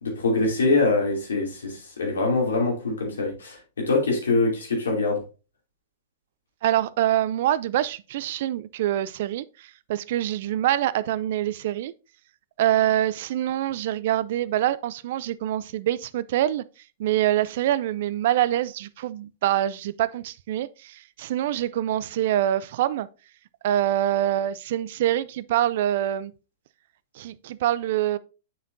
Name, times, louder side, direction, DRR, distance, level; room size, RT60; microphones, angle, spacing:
voice 1, 0.0-5.2, left 3 dB, 85° left, 2.8 m, -24 dB
voice 2, 6.6-11.9 12.6-16.6 17.0-23.1 23.6-26.3 27.2-28.2, right 12 dB, 60° right, 0.4 m, -25 dB
7.2 x 6.1 x 2.7 m
hypercardioid pair, 115°, 0 cm